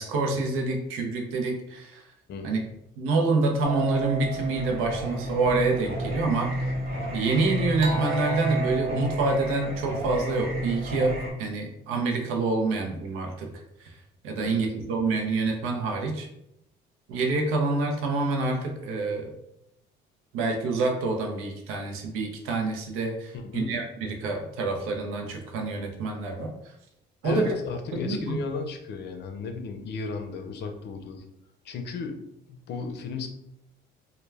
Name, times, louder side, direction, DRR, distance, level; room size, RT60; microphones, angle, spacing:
voice 1, 0.0-2.0 2.4-2.6 3.0-6.5 7.1-13.5 14.2-16.3 17.1-19.3 20.3-26.5 27.2-27.5 27.9-28.4, right 3 dB, 80° right, 3 dB, 0.6 m, -27 dB
voice 2, 2.3-2.7 14.4-14.6 23.3-23.8 27.2-31.2 31.6-32.2 32.5-33.3, left 4 dB, 55° left, 6 dB, 0.5 m, -34 dB
Singing, 3.6-11.3, right 1 dB, 45° right, 0.8 m, -31 dB
2.2 x 2.2 x 3.2 m, 0.82 s
supercardioid pair, 80°, 21 cm